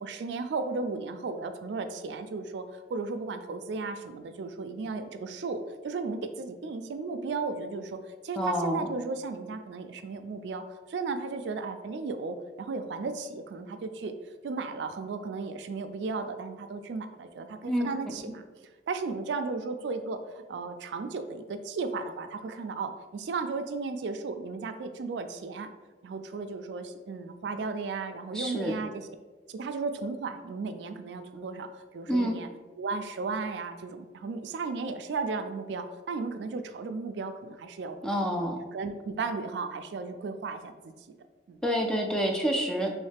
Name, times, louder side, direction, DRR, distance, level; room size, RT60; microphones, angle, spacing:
voice 1, 0.0-8.0 8.2-14.1 14.4-25.7 26.0-29.1 29.5-32.5 32.8-38.0 38.3-40.9 41.5-41.6, right 4 dB, 80° right, 8 dB, 0.3 m, -35 dB
voice 2, 8.4-8.9 17.6-17.9 28.3-28.7 32.1-32.4 38.0-38.6 41.6-42.9, equal, 5° left, 1 dB, 0.3 m, -27 dB
3.1 x 3.1 x 3.3 m, 1.3 s
head